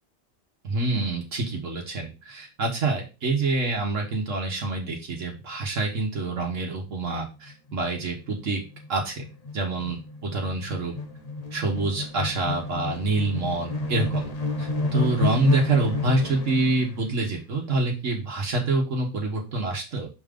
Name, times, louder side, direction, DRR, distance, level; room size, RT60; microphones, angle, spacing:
voice 1, 0.6-8.6 8.9-9.2 9.5-10.9 11.5-14.2 14.6-20.1, right 3 dB, 75° right, -1 dB, 1.6 m, -26 dB
sound 1, 6.9-7.0 7.3-16.9, left 3 dB, 35° left, 0.8 m, -30 dB
6.4 x 3.7 x 5.0 m, 0.30 s
omnidirectional pair, 1.3 m